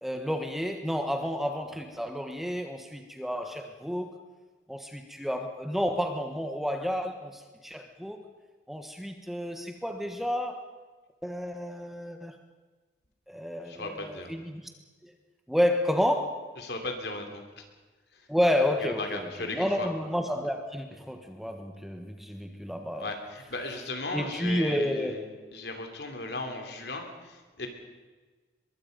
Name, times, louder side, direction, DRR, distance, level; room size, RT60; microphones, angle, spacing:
voice 1, 0.0-4.2 4.7-8.2 8.7-10.7 11.2-12.3 13.3-14.7 15.0-15.1 15.5-16.4 18.3-23.1 24.1-25.2, equal, ahead, 5 dB, 1.3 m, -30 dB
voice 2, 13.6-14.3 16.6-17.6 18.1-18.3 18.8-19.9 23.0-27.7, left 2 dB, 65° left, 4 dB, 3.2 m, -36 dB
23.5 x 22.5 x 5.3 m, 1.3 s
head